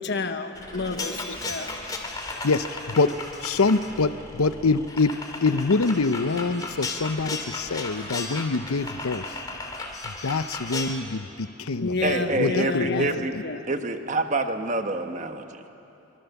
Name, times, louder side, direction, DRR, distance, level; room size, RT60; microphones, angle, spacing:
voice 1, 0.0-1.7 11.8-13.6, left 3 dB, 50° left, 7 dB, 1.2 m, -30 dB
sound 1, 0.5-10.9, left 3 dB, 20° left, 2.3 m, -35 dB
voice 2, 2.4-9.4 10.0-13.2, left 3 dB, 85° left, 13 dB, 0.7 m, -25 dB
voice 3, 12.0-13.4 13.7-15.6, right 2 dB, 35° right, 6 dB, 1.2 m, -27 dB
24.5 x 24.0 x 7.1 m, 2.9 s
head